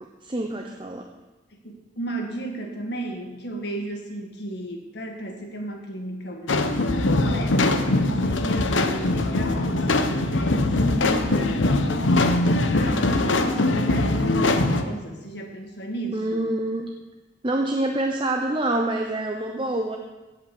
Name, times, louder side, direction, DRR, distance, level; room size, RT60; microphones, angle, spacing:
voice 1, 0.0-1.1 16.1-16.9 17.4-20.0, right 1 dB, 25° right, 2 dB, 0.8 m, -26 dB
voice 2, 1.5-7.6 8.2-12.0 12.7-16.5, right 1 dB, 60° left, 2 dB, 2.0 m, -34 dB
sound 1, 6.5-14.8, left 2 dB, 90° left, 0.9 m, -22 dB
16.5 x 5.6 x 7.1 m, 1.1 s
head